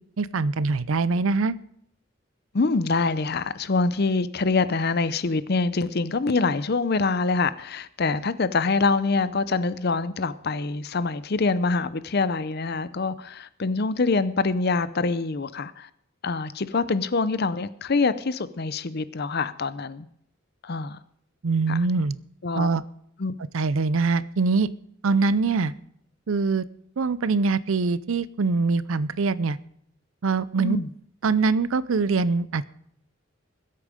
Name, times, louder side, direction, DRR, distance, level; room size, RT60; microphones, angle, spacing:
voice 1, 0.2-1.5 21.4-22.2 22.6-22.8 23.5-24.7 25.0-25.7 26.3-26.6 27.0-29.6 30.2-30.8 31.2-32.6, right 4 dB, 70° right, 17 dB, 0.5 m, -23 dB
voice 2, 2.5-15.9 16.2-20.1 20.6-21.0 21.7-21.8 22.4-22.7 23.2-23.3 30.6-30.9, left 3 dB, 50° left, 15 dB, 0.6 m, -25 dB
20.5 x 8.5 x 5.1 m, 0.69 s
head